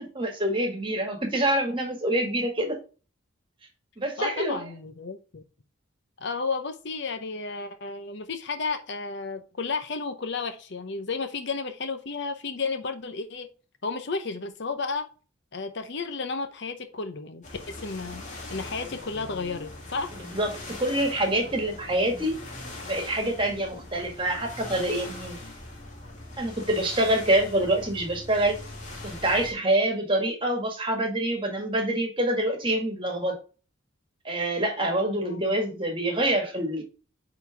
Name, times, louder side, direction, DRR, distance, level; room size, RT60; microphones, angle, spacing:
voice 1, 0.0-2.8 4.0-4.6 20.3-22.3 22.9-25.4 26.4-28.6 29.0-33.4 34.3-36.8, right 1 dB, 25° right, 3 dB, 1.8 m, -26 dB
voice 2, 4.2-5.4 6.2-13.5 13.8-15.1 15.5-18.2 18.5-20.1 35.2-35.6, left 4 dB, 55° left, 8 dB, 0.8 m, -32 dB
sound 1, 17.4-29.5, left 2 dB, 35° left, 2.2 m, -41 dB
8.9 x 4.0 x 3.4 m, 0.35 s
head